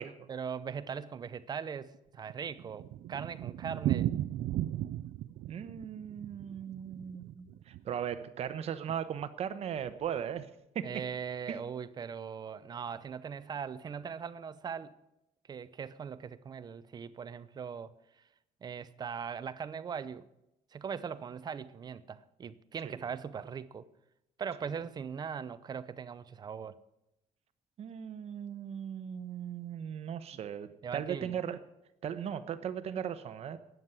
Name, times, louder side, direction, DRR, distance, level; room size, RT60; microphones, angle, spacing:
voice 1, 0.0-4.1 10.8-14.9 15.5-18.2 18.6-20.3 20.7-23.9 24.4-26.8 30.8-31.4, right 6 dB, 30° right, 0.6 m, -40 dB
Thunder, 1.9-8.2 8.5-8.6 8.9-9.0 9.2-9.3 9.9-10.2, right 13 dB, 85° right, 0.5 m, -36 dB
voice 2, 5.5-10.5 10.7-10.9 11.5-11.6 22.8-23.0 27.8-31.6 32.0-33.6, right 8 dB, 50° right, 1.0 m, -38 dB
13.5 x 9.4 x 8.2 m
cardioid pair, 170°, 14 cm